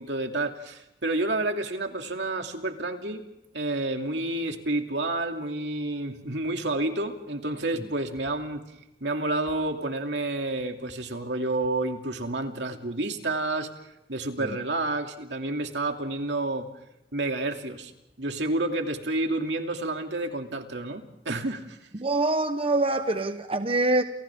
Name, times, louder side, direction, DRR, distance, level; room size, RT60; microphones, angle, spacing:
voice 1, 0.0-3.2 3.5-8.6 9.0-13.7 14.1-16.7 17.1-17.9 18.2-21.8, right 2 dB, 75° right, 2.6 m, -29 dB
voice 2, 22.0-24.0, right 2 dB, 30° right, 1.0 m, -24 dB
29.5 x 29.0 x 3.6 m
head